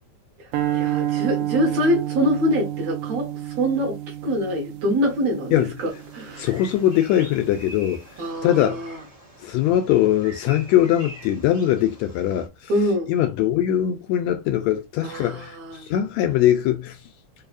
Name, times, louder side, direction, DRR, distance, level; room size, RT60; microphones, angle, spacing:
voice 1, 0.4-6.5 8.2-9.0 12.7-13.1 15.0-15.9, equal, 65° right, 2.1 m, -25 dB
sound 1, 0.5-6.9, right 13 dB, 85° right, 1.3 m, -29 dB
Bird vocalization bird call bird song, 5.9-12.5, right 1 dB, 45° right, 0.4 m, -45 dB
voice 2, 6.4-8.0 8.4-8.9 9.4-12.7 13.1-17.0, left 11 dB, 80° left, 1.7 m, -21 dB
4.8 x 2.7 x 2.5 m
omnidirectional pair, 3.5 m